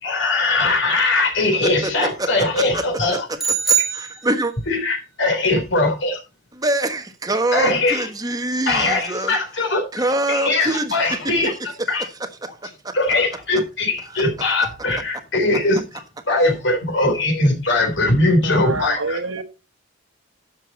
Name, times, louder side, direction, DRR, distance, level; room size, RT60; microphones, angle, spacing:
voice 1, 0.0-3.2 4.7-6.2 7.5-8.0 8.7-9.8 10.3-11.5 11.9-12.1 12.9-15.8 16.3-19.2, left 2 dB, 60° left, 3.6 m, -20 dB
voice 2, 1.6-2.3 2.5-2.8 3.7-4.5 6.5-9.4 9.9-11.1 12.4-12.9, right 1 dB, 20° right, 1.2 m, -24 dB
sound 1, 3.4-4.8, right 7 dB, ahead, 1.9 m, -22 dB
voice 3, 18.4-19.4, right 3 dB, 85° right, 1.3 m, -27 dB
12.0 x 6.9 x 4.2 m
head